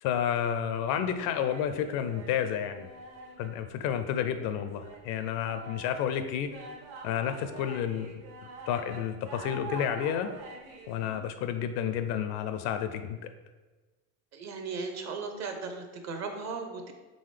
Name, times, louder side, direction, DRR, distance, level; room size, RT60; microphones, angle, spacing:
voice 1, 0.0-2.9 3.4-6.5 7.0-8.1 8.7-10.3 10.9-13.2, left 9 dB, 55° left, 9 dB, 0.5 m, -30 dB
sound 1, 1.1-11.2, right 2 dB, 55° right, 1.1 m, -46 dB
voice 2, 14.3-16.9, right 4 dB, 40° right, 5 dB, 0.8 m, -37 dB
3.9 x 3.6 x 3.2 m, 1.2 s
hypercardioid pair, 95°, 43 cm